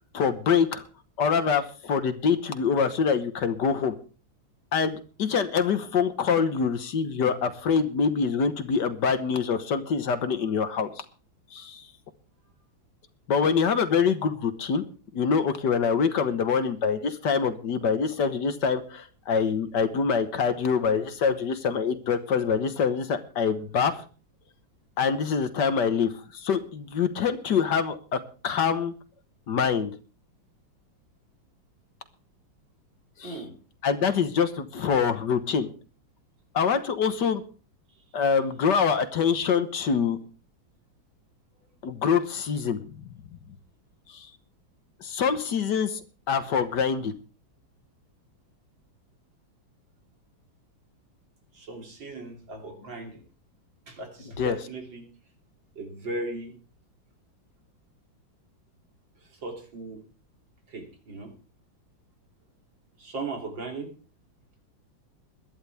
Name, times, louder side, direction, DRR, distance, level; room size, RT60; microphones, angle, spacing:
voice 1, 0.1-0.8 1.2-3.9 4.7-11.0 11.5-11.9 13.3-14.8 15.1-24.0 25.0-28.9 29.5-29.9 33.2-33.3 33.8-35.7 36.5-37.4 38.1-40.2 41.8-43.1 44.1-44.3 45.0-46.0 46.3-47.1 54.4-54.6, left 6 dB, 60° left, 10 dB, 1.7 m, -25 dB
voice 2, 33.2-33.5 51.5-53.2 53.9-55.0 55.8-56.6 59.2-60.0 60.7-61.3 63.0-63.9, right 2 dB, 70° right, 2 dB, 3.8 m, -37 dB
21.5 x 11.5 x 3.5 m, 0.36 s
omnidirectional pair, 2.1 m